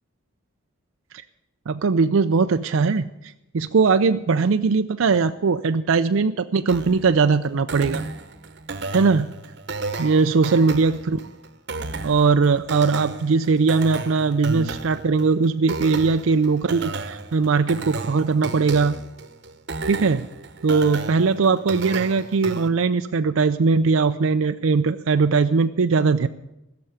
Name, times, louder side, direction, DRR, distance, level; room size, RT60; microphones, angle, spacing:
voice 1, 1.7-8.0 8.9-9.3 10.0-11.2 12.0-19.0 19.9-20.3 20.6-26.3, right 4 dB, 80° right, 9 dB, 0.5 m, -20 dB
sound 1, 6.7-22.7, right 3 dB, 55° right, 1.0 m, -33 dB
15.5 x 6.9 x 9.4 m, 0.90 s
head